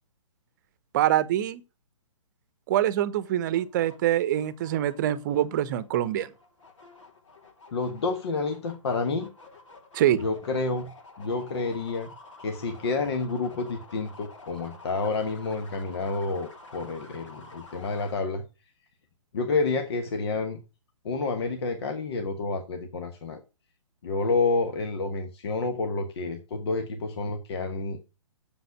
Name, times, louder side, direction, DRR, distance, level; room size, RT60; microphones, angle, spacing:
voice 1, 0.9-1.6 2.7-6.3 9.9-10.2, right 12 dB, 35° right, 0.9 m, -25 dB
sound 1, 3.2-18.2, left 3 dB, 70° left, 2.9 m, -50 dB
voice 2, 7.7-9.3 10.2-10.9 11.2-12.1 12.4-18.4 19.3-20.6 21.0-23.4 24.0-28.0, left 3 dB, 50° left, 1.4 m, -29 dB
7.9 x 7.1 x 6.5 m
figure-of-eight pair, 125°, 17 cm